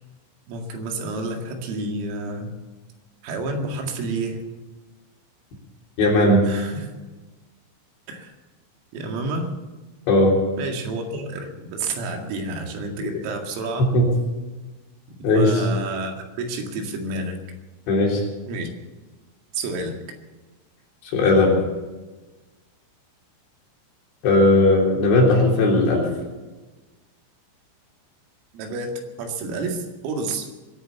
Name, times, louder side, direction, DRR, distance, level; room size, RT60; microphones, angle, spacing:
voice 1, 0.5-2.5 3.2-4.4 6.5-6.9 8.1-8.3 8.9-9.5 10.6-13.9 15.1-17.4 18.5-18.7 19.5-20.0 28.5-30.5, right 2 dB, 90° right, 2 dB, 4.9 m, -30 dB
voice 2, 6.0-6.5 10.1-10.4 13.0-13.1 13.9-14.0 15.2-15.7 17.9-18.2 21.0-21.6 24.2-26.1, left 2 dB, 65° left, -1 dB, 5.7 m, -17 dB
22.5 x 9.1 x 7.1 m, 1.2 s
omnidirectional pair, 5.9 m